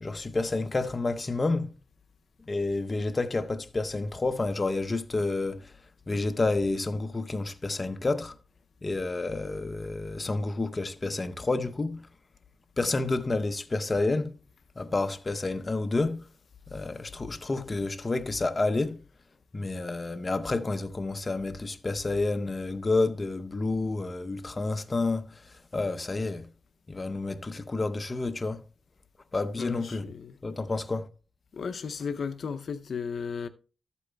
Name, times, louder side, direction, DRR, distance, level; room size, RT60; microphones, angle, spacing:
voice 1, 0.0-1.8 2.5-5.7 6.1-8.4 8.8-12.0 12.8-14.4 14.8-16.3 16.7-19.0 19.5-26.5 26.9-28.6 29.3-30.1 30.4-31.1, left 3 dB, 30° left, 0.6 m, -29 dB
voice 2, 29.6-30.4 31.5-33.5, left 6 dB, 65° left, 0.5 m, -35 dB
13.5 x 8.2 x 2.2 m
wide cardioid pair, 120°, 0 cm